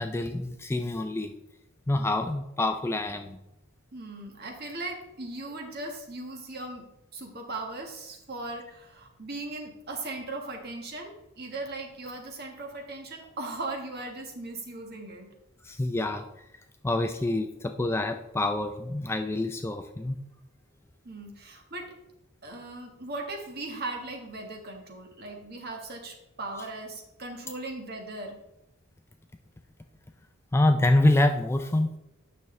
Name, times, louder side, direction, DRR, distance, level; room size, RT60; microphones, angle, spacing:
voice 1, 0.0-1.3 1.9-3.4 15.6-16.3 16.8-20.2 30.5-32.0, left 2 dB, 10° left, 6 dB, 0.3 m, -26 dB
voice 2, 3.9-15.3 21.0-21.9 22.4-28.4, right 2 dB, 45° right, 2 dB, 1.4 m, -38 dB
9.3 x 6.0 x 3.2 m, 0.89 s
head